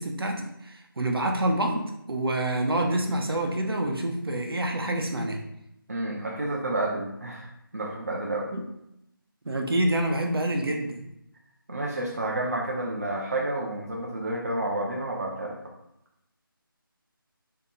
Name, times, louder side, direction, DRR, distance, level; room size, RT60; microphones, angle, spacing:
voice 1, 0.0-5.4 8.5-8.6 9.4-11.0, right 1 dB, 85° right, 2 dB, 0.8 m, -27 dB
voice 2, 5.9-8.5 11.7-15.6, right 1 dB, 40° right, -1 dB, 0.5 m, -30 dB
2.8 x 2.7 x 3.7 m, 0.80 s
figure-of-eight pair, 175°, 12 cm